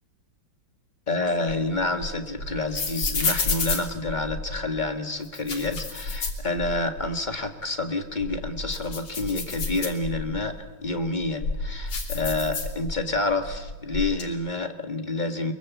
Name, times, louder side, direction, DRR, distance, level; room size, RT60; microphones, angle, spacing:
voice 1, 1.1-15.5, left 2 dB, 25° left, 6 dB, 1.8 m, -28 dB
sound 1, 1.2-4.7 5.2-7.1 7.4-7.5 8.0-10.4 11.0-13.2 13.4-14.2, left 3 dB, 90° left, 3.9 m, -30 dB
23.5 x 22.5 x 8.4 m, 1.2 s
omnidirectional pair, 2.3 m